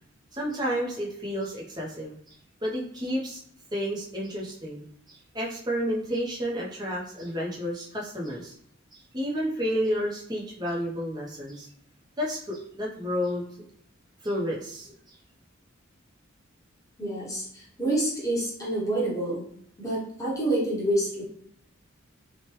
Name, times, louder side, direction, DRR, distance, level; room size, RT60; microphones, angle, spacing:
voice 1, 0.3-3.4 3.7-8.5 8.9-11.7 12.2-13.4 14.2-15.2, equal, 20° right, -3 dB, 0.6 m, -31 dB
voice 2, 17.0-19.4 19.8-21.2, right 1 dB, 15° left, -6 dB, 0.9 m, -27 dB
3.0 x 2.1 x 2.9 m, 0.65 s
head